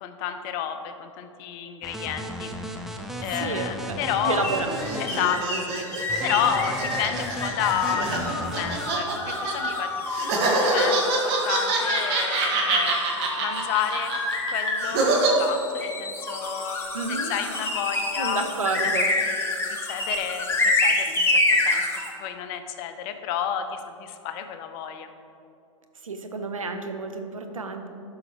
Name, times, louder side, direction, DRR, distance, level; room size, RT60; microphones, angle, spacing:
voice 1, 0.0-2.5 3.2-4.5 5.0-5.8 6.2-9.9 10.2-13.0 13.4-14.1 14.5-15.0 15.4-18.5 18.8-19.5 19.8-21.3 21.6-21.8 22.2-25.1, left 8 dB, 45° left, 8 dB, 0.7 m, -30 dB
sound 1, 1.8-5.2 6.1-8.9, equal, ahead, 0.5 m, -35 dB
voice 2, 3.4-4.0 4.3-4.7 16.9-17.3 18.2-19.1 26.0-27.9, right 4 dB, 90° right, 6 dB, 0.8 m, -30 dB
sound 2, 4.3-9.7 10.1-15.3, right 3 dB, 50° right, 1.6 m, -25 dB
sound 3, 4.4-22.1, left 2 dB, 15° left, 1.1 m, -28 dB
11.5 x 5.6 x 3.0 m, 2.6 s
hypercardioid pair, 105°, 17 cm